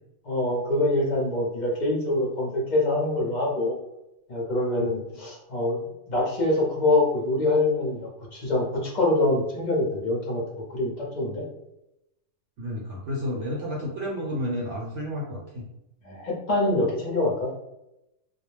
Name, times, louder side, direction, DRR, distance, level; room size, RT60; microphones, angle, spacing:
voice 1, 0.2-3.8 4.3-5.8 6.1-10.4 10.7-11.5 16.0-17.5, left 2 dB, 45° left, -3 dB, 0.6 m, -25 dB
voice 2, 12.6-15.6, equal, 65° right, -3 dB, 0.9 m, -31 dB
2.3 x 2.0 x 3.1 m, 0.87 s
omnidirectional pair, 1.4 m